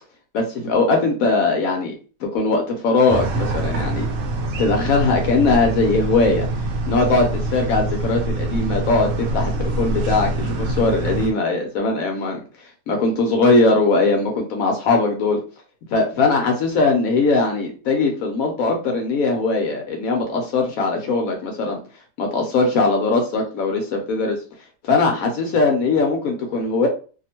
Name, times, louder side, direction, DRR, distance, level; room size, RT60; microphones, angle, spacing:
voice 1, 0.3-1.9 2.2-4.1 4.6-6.5 6.9-12.4 12.9-15.4 15.9-21.8 22.2-24.4 24.8-26.9, left 3 dB, 70° left, 2 dB, 0.9 m, -20 dB
sound 1, 3.1-11.3, right 2 dB, 70° right, 1.0 m, -25 dB
2.9 x 2.0 x 2.8 m, 0.37 s
omnidirectional pair, 1.8 m